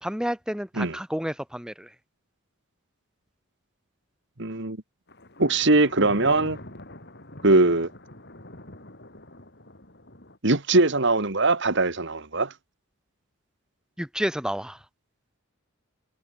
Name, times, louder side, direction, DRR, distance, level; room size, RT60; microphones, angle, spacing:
voice 1, 0.0-1.9 14.0-14.8, equal, 5° right, 1.6 m, -30 dB
voice 2, 4.4-4.8 5.4-6.6 7.4-7.9 10.4-12.5, right 2 dB, 55° right, 1.9 m, -21 dB
Thunder, 5.1-10.4, left 1 dB, 50° left, 6.6 m, -44 dB
head